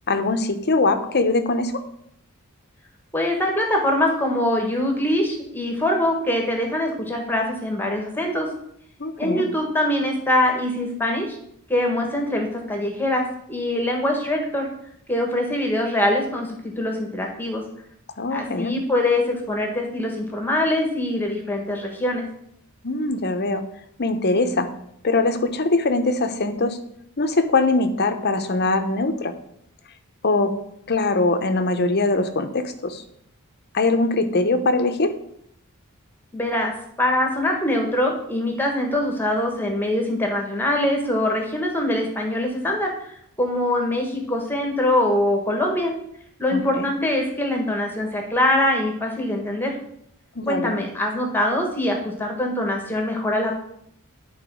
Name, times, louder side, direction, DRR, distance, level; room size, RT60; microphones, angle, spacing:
voice 1, 0.1-1.7 9.0-9.5 18.2-18.8 22.8-23.6 24.0-24.7 25.0-26.8 27.2-29.3 30.2-30.5 30.9-33.0 33.7-35.1 46.5-46.9 50.3-50.8, left 3 dB, 50° left, 7 dB, 0.9 m, -22 dB
voice 2, 3.1-8.5 9.2-11.4 11.7-13.2 13.5-14.7 15.1-17.6 18.3-22.2 36.3-36.7 37.0-45.9 46.4-49.7 50.5-53.5, left 1 dB, 10° left, 2 dB, 1.4 m, -23 dB
10.5 x 4.3 x 6.2 m, 0.72 s
head